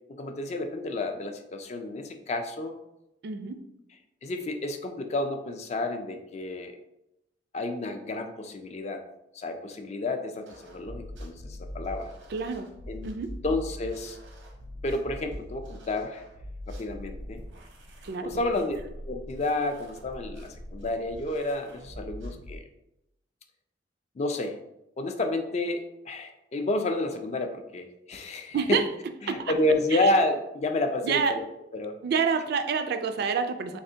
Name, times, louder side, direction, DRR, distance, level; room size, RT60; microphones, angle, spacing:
voice 1, 0.2-2.8 4.2-6.8 7.5-9.0 9.3-12.1 12.9-13.1 13.4-14.2 14.8-16.2 16.7-17.4 18.2-18.8 19.1-22.6 24.2-24.6 25.0-28.8 29.2-31.5 31.7-32.0, left 2 dB, 35° left, 6 dB, 0.4 m, -30 dB
voice 2, 3.2-3.6 12.3-12.7 13.0-13.3 18.0-18.3 28.5-28.9 29.3-29.4 29.9-30.1 31.0-31.4 32.0-33.8, right 5 dB, 60° right, 8 dB, 0.3 m, -27 dB
sound 1, 10.4-22.6, equal, 90° right, 0.8 m, -42 dB
3.6 x 3.2 x 2.7 m, 0.86 s
head